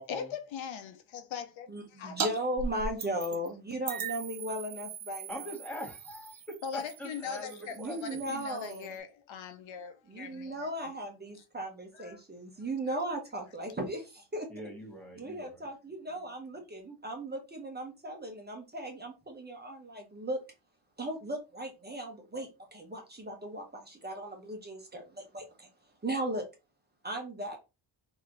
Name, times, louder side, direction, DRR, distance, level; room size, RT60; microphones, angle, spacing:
voice 1, 0.1-2.2 6.6-10.9 11.9-12.2, left 7 dB, 80° left, 0.8 m, -41 dB
voice 2, 1.7-5.5 7.8-8.9 10.1-14.5 15.1-20.4 21.0-25.7 26.0-26.4 27.0-27.6, right 1 dB, 20° right, 1.1 m, -37 dB
sound 1, 2.2-2.3 2.6-3.5 3.9-9.0, right 5 dB, 50° right, 0.9 m, -39 dB
voice 3, 5.3-8.2 14.5-15.6, equal, 5° left, 1.7 m, -43 dB
3.2 x 3.0 x 3.8 m
cardioid pair, 105°, 46 cm